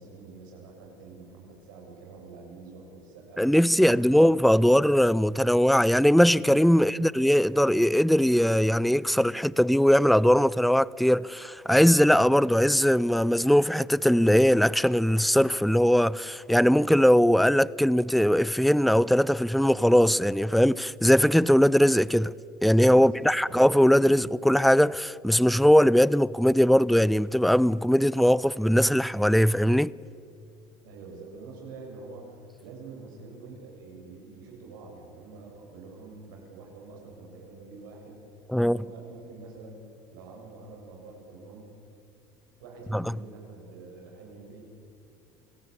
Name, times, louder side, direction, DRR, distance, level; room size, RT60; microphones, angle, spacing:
voice 1, 0.0-4.3 22.9-23.6 30.8-38.2 38.7-41.7 42.6-44.6, right 3 dB, 90° right, 7.3 m, -46 dB
voice 2, 3.4-22.3 22.6-29.9 38.5-38.8 42.9-43.0, equal, ahead, 0.5 m, -20 dB
27.0 x 17.5 x 8.7 m
supercardioid pair, 90°, 10 cm